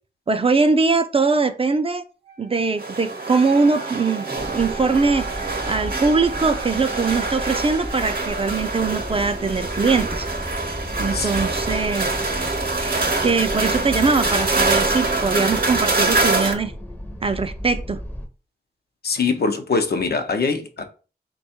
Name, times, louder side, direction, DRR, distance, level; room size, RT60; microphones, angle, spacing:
voice 1, 0.3-2.0 2.4-4.3 4.5-10.3 11.0-12.2 12.8-16.7 17.2-18.0, right 4 dB, 35° right, 0.4 m, -21 dB
Wind instrument woodwind instrument, 2.2-8.2, right 10 dB, 90° right, 0.6 m, -40 dB
sound 1, 2.8-16.5, right 3 dB, 60° right, 0.8 m, -25 dB
sound 2, 4.4-18.3, equal, 10° left, 0.6 m, -34 dB
voice 2, 19.0-20.8, left 4 dB, 65° left, 0.7 m, -22 dB
3.5 x 2.3 x 4.2 m
wide cardioid pair, 70°, 17 cm